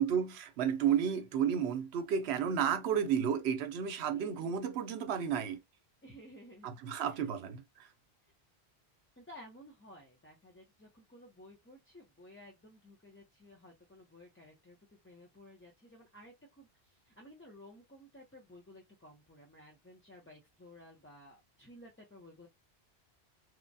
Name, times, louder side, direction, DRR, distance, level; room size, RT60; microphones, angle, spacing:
voice 1, 0.0-5.6 6.6-7.9, right 8 dB, 80° right, 0.9 m, -32 dB
voice 2, 4.0-4.7 6.0-7.3 9.2-14.8 15.0-22.5, left 1 dB, 15° left, 0.6 m, -55 dB
3.1 x 2.1 x 2.6 m
omnidirectional pair, 1.1 m